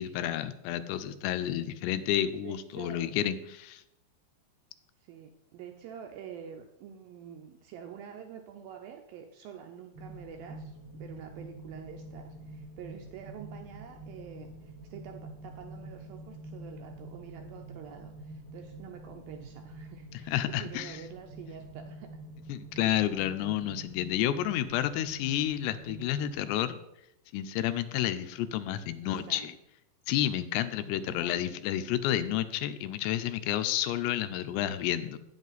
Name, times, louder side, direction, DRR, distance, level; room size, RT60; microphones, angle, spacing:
voice 1, 0.0-3.8 20.3-21.0 22.5-26.8 27.3-29.5 30.1-35.2, left 12 dB, 85° left, 11 dB, 2.7 m, -30 dB
voice 2, 2.4-3.1 5.0-22.1 29.0-29.5 31.1-31.5, right 8 dB, 80° right, 4 dB, 2.1 m, -47 dB
sound 1, 9.9-26.4, right 1 dB, 50° left, 3.1 m, -46 dB
9.2 x 7.9 x 4.0 m, 0.82 s
omnidirectional pair, 4.8 m